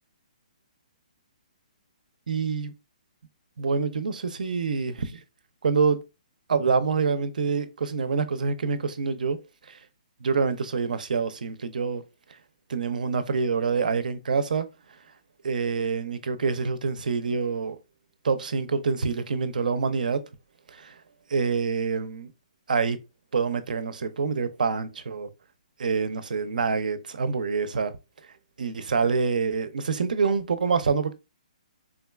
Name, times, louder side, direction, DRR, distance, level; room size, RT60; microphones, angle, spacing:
voice 1, 2.3-2.7 3.6-5.2 5.6-6.0 6.5-9.4 9.7-9.8 10.2-12.0 12.7-14.7 15.4-17.8 18.2-20.2 20.7-20.9 21.3-22.3 22.7-23.0 23.3-25.3 25.8-27.9 28.6-31.1, right 5 dB, 80° right, 0.5 m, -26 dB
3.6 x 2.2 x 2.3 m
hypercardioid pair, 170°, 4 cm